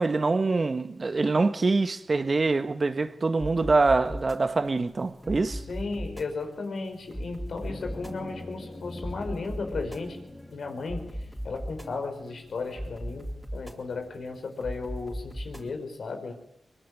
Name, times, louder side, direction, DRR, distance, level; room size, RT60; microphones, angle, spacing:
voice 1, 0.0-5.6, right 3 dB, 45° right, 1.6 m, -25 dB
sound 1, 3.4-15.8, equal, 5° right, 4.2 m, -39 dB
voice 2, 5.7-10.2 10.5-11.1 11.4-16.3, left 3 dB, 75° left, 5.1 m, -35 dB
sound 2, 7.6-12.1, left 1 dB, 20° left, 4.1 m, -44 dB
23.5 x 22.5 x 9.8 m
cardioid pair, 60°, 0 cm